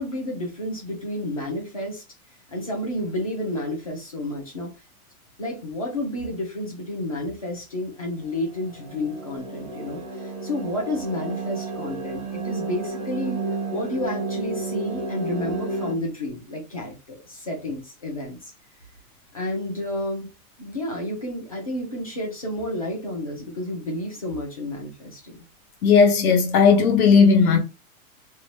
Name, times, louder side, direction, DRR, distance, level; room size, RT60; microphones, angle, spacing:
voice 1, 0.0-2.0 2.5-4.7 5.4-13.4 13.7-18.4 19.3-20.3 20.6-25.4, left 1 dB, 25° left, 0.4 m, -30 dB
sound 1, 8.2-15.9, right 3 dB, 30° right, 0.5 m, -32 dB
voice 2, 25.8-27.6, left 5 dB, 80° left, 0.9 m, -16 dB
2.7 x 2.1 x 3.1 m
supercardioid pair, 180°, 44 cm